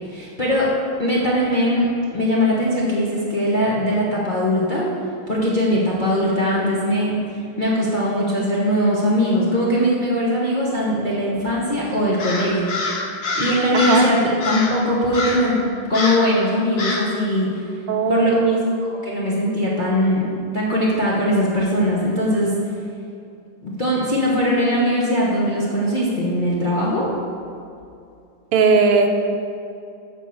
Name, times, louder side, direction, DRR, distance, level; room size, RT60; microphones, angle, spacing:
voice 1, 0.1-0.7 1.0-4.9 5.3-7.2 7.6-12.8 13.4-14.2 14.4-17.6 18.1-18.4 19.0-20.3 20.5-22.5 23.6-27.1, equal, 35° left, -6 dB, 0.7 m, -20 dB
Crow, 12.2-14.1 14.4-14.8 15.1-15.5 15.9-16.3 16.8-17.1, left 2 dB, 65° left, 1.8 m, -25 dB
voice 2, 13.7-14.1 17.9-18.6 28.5-29.1, right 4 dB, 85° right, 4 dB, 1.7 m, -17 dB
7.5 x 4.5 x 7.0 m, 2.5 s
omnidirectional pair, 2.3 m